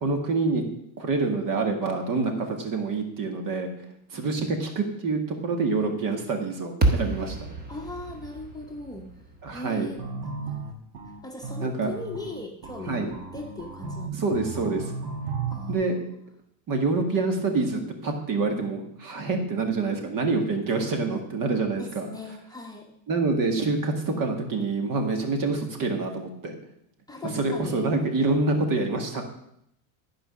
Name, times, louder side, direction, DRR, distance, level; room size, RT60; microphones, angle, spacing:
voice 1, 0.0-0.6 1.0-3.7 4.1-7.4 9.4-9.9 11.6-11.9 12.9-13.1 14.2-14.9 15.7-16.0 16.7-22.1 23.1-26.6 27.2-29.2, right 3 dB, 45° right, 4 dB, 1.9 m, -26 dB
sound 1, 6.8-11.1, right 2 dB, 20° right, 1.4 m, -30 dB
voice 2, 7.7-9.1 9.5-10.0 10.4-10.7 11.2-14.4 15.5-15.9 20.7-21.0 21.8-22.9 27.1-27.8, left 2 dB, 10° left, 0 dB, 1.2 m, -39 dB
sound 2, 10.0-15.7, right 4 dB, 65° right, 2.0 m, -35 dB
12.0 x 5.1 x 6.3 m, 0.75 s
cardioid pair, 130°, 46 cm